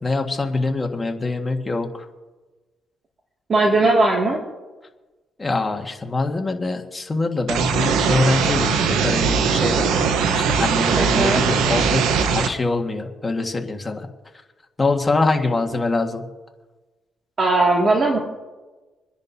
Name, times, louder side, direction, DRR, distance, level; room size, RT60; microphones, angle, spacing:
voice 1, 0.0-2.1 5.4-14.1 14.8-16.2, left 3 dB, 20° left, 3 dB, 1.7 m, -24 dB
voice 2, 3.5-4.4 11.0-11.4 17.4-18.2, right 2 dB, 45° right, -2 dB, 2.3 m, -18 dB
sound 1, 7.5-12.5, right 6 dB, 90° right, 1.0 m, -20 dB
28.0 x 10.5 x 2.8 m, 1.2 s
cardioid pair, 90°, 0 cm